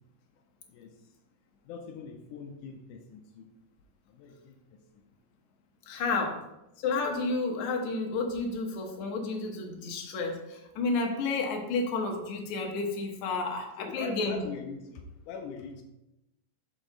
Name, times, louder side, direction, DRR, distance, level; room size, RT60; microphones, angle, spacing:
voice 1, 1.7-3.5 4.1-4.6 6.0-6.3 13.8-15.8, left 5 dB, 90° left, 3 dB, 2.1 m, -42 dB
voice 2, 5.9-6.4 6.8-14.4, left 3 dB, 70° left, 2 dB, 2.3 m, -31 dB
6.6 x 5.3 x 3.8 m, 0.92 s
omnidirectional pair, 3.6 m